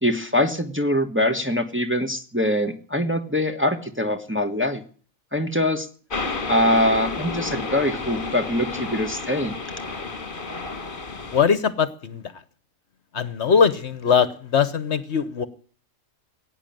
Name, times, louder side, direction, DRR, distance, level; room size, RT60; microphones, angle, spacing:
voice 1, 0.0-4.8 5.3-5.9 6.5-9.5, left 1 dB, 10° right, 4 dB, 1.2 m, -23 dB
sound 1, 6.1-11.4, left 3 dB, 40° left, 1.7 m, -31 dB
voice 2, 11.3-12.4 13.1-15.4, left 6 dB, 60° left, 14 dB, 1.2 m, -21 dB
17.5 x 9.2 x 8.9 m, 0.43 s
omnidirectional pair, 1.4 m